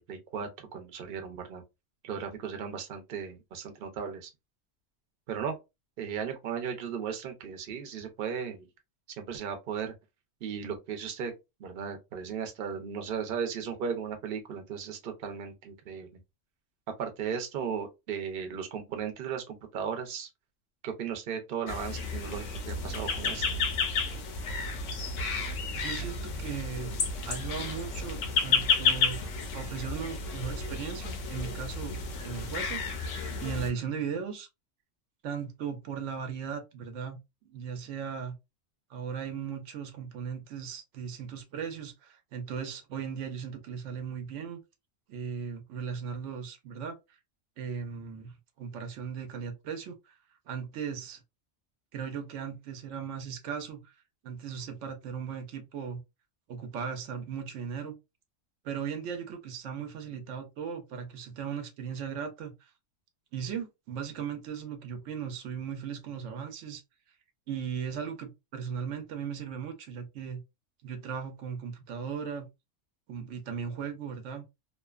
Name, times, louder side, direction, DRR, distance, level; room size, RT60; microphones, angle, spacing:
voice 1, 0.0-1.6 2.0-4.3 5.3-5.6 6.0-8.7 9.2-9.9 10.4-11.3 11.6-16.1 16.9-20.3 20.8-23.6, right 7 dB, 55° right, 0.8 m, -36 dB
sound 1, 21.7-33.7, left 4 dB, 90° left, 0.9 m, -31 dB
voice 2, 25.7-26.9 27.2-29.2 29.5-32.0 32.2-32.8 33.4-34.5 35.2-37.2 37.5-38.4 38.9-44.6 45.1-47.0 47.6-50.2 50.5-51.2 51.9-53.9 54.2-56.0 56.5-58.0 58.6-62.7 63.3-66.8 67.5-70.4 70.8-72.5 73.1-74.4, right 7 dB, 80° right, 0.9 m, -37 dB
2.7 x 2.1 x 2.3 m
omnidirectional pair, 1.2 m